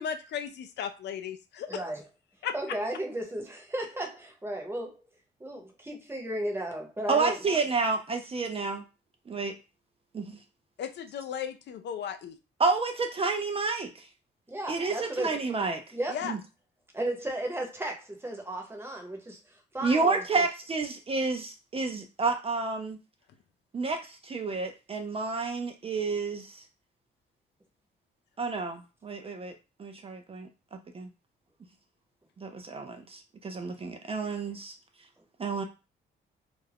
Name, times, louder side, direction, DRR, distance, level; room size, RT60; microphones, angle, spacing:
voice 1, 0.0-1.8 2.4-2.5 10.8-12.4 16.1-16.3, left 8 dB, 60° left, 0.4 m, -35 dB
voice 2, 1.7-2.0 2.5-5.0 5.4-7.4 14.5-15.4 15.9-16.2 16.9-20.4, right 1 dB, 10° right, 0.8 m, -34 dB
voice 3, 7.1-8.8 9.3-9.5 10.1-10.4 12.6-13.9 14.7-15.8 16.2-16.4 19.8-23.0 23.7-26.6 28.4-30.5 30.9-31.1 32.4-34.7 35.4-35.6, right 4 dB, 30° right, 0.4 m, -30 dB
2.4 x 2.1 x 3.3 m
cardioid pair, 90°, 20 cm